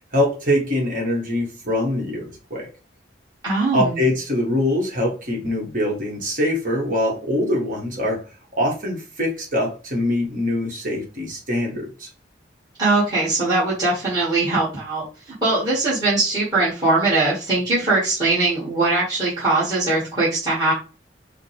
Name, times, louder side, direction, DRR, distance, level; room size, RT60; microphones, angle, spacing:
voice 1, 0.1-2.7 3.7-8.2 8.6-12.1, left 1 dB, 45° right, -1 dB, 1.4 m, -23 dB
voice 2, 3.4-4.1 12.8-20.7, right 2 dB, 20° right, -10 dB, 1.8 m, -21 dB
5.4 x 2.2 x 3.3 m, 0.34 s
head